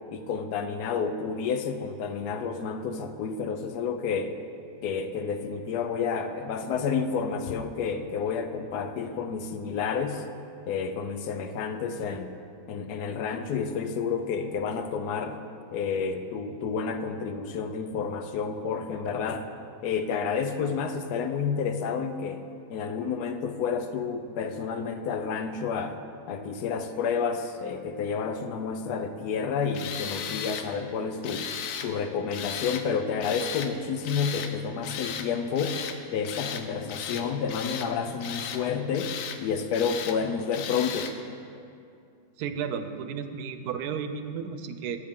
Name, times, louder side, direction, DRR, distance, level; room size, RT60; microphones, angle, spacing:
voice 1, 0.1-4.4 4.8-10.2 10.7-12.3 12.7-15.4 15.7-19.5 19.8-22.4 22.7-26.0 26.3-41.1, left 6 dB, 90° left, 8 dB, 1.2 m, -30 dB
Tools, 29.7-30.7 31.2-31.9 32.3-32.8 33.2-33.7 34.0-34.5 34.8-35.3 35.5-36.0 36.2-36.6 36.9-37.9 38.2-38.6 38.9-39.4 39.7-40.2 40.5-41.1, left 8 dB, 70° left, 0.9 m, -35 dB
voice 2, 42.4-45.0, right 7 dB, 85° right, 9 dB, 1.1 m, -33 dB
13.0 x 7.5 x 3.7 m, 2.5 s
omnidirectional pair, 1.6 m